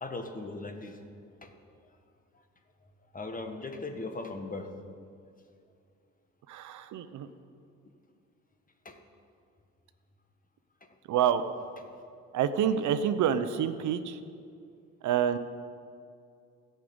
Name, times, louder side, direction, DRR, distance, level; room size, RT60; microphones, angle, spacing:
voice 1, 0.0-1.0 1.4-1.5 3.1-4.7 8.8-9.0, left 3 dB, 25° left, 5 dB, 1.5 m, -38 dB
voice 2, 6.5-7.3 11.1-11.4 12.3-14.2 15.0-15.4, right 9 dB, 75° right, 11 dB, 0.8 m, -27 dB
13.5 x 6.7 x 8.7 m, 2.4 s
cardioid pair, 90°, 30 cm